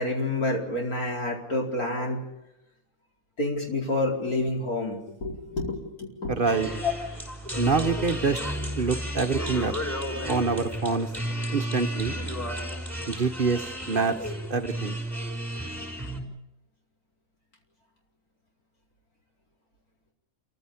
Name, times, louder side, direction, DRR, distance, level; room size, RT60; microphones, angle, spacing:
voice 1, 0.0-2.2 3.4-6.4 6.8-6.9, left 2 dB, 90° left, 0 dB, 5.2 m, -28 dB
voice 2, 6.3-6.7 7.6-8.4 8.8-9.7 10.3-11.1 11.5-12.1 13.1-14.2 14.5-15.0, right 4 dB, 40° right, 8 dB, 1.0 m, -26 dB
Three Saxophones at a Romanian festival, 6.4-16.2, equal, ahead, 5.6 m, -32 dB
28.0 x 15.5 x 8.6 m, 0.92 s
omnidirectional pair, 1.5 m